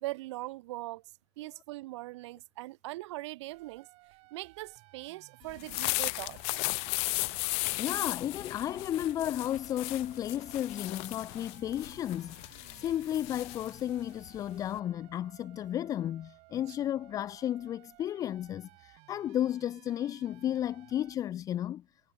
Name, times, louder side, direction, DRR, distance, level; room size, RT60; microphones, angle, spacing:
voice 1, 0.0-1.0 1.4-3.9 4.3-6.4 16.7-16.8, right 19 dB, 85° right, 2.6 m, -41 dB
sound 1, 3.5-21.1, right 24 dB, 45° right, 7.2 m, -59 dB
sound 2, 5.5-14.8, left 31 dB, 45° left, 1.2 m, -36 dB
voice 2, 7.8-21.8, left 11 dB, 25° left, 0.8 m, -33 dB
cardioid pair, 175°, 15 cm